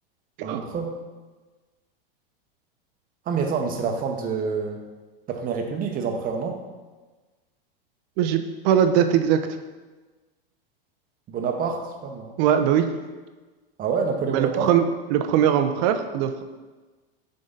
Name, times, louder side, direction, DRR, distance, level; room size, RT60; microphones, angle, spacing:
voice 1, 0.4-0.9 3.3-4.8 5.3-6.6 11.3-12.3 13.8-14.7, right 5 dB, 30° right, 3 dB, 1.0 m, -27 dB
voice 2, 8.2-9.4 12.4-12.9 14.3-14.8 15.1-16.4, right 9 dB, 50° right, 8 dB, 0.7 m, -21 dB
7.5 x 3.9 x 3.9 m, 1.3 s
hypercardioid pair, 110°, 29 cm